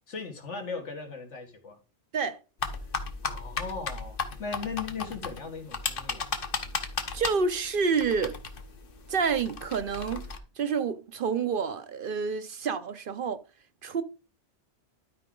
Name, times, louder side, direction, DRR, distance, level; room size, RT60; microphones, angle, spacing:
voice 1, 0.1-1.8 3.2-6.3, left 4 dB, 80° left, 2.0 m, -38 dB
sound 1, 2.6-10.4, left 5 dB, 50° left, 1.1 m, -36 dB
voice 2, 7.1-8.4 9.1-10.2 10.6-13.4 13.8-14.0, right 5 dB, 55° right, 0.8 m, -28 dB
12.0 x 4.7 x 3.8 m
omnidirectional pair, 1.2 m